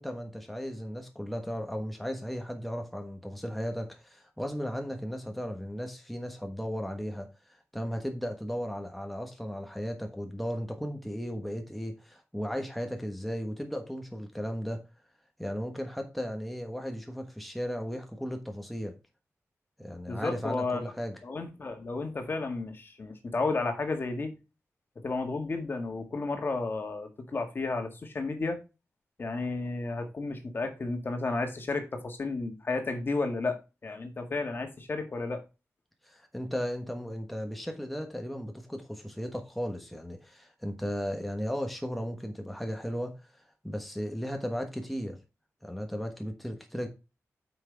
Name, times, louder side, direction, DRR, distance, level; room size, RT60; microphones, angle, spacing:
voice 1, 0.0-14.8 15.4-18.9 19.8-21.2 36.0-45.2 45.6-46.9, equal, ahead, 1.2 m, -36 dB
voice 2, 20.1-20.8 21.2-24.4 25.0-28.6 29.2-35.4, left 3 dB, 40° left, 1.8 m, -32 dB
9.0 x 6.0 x 3.4 m
wide cardioid pair, 160°, 5 cm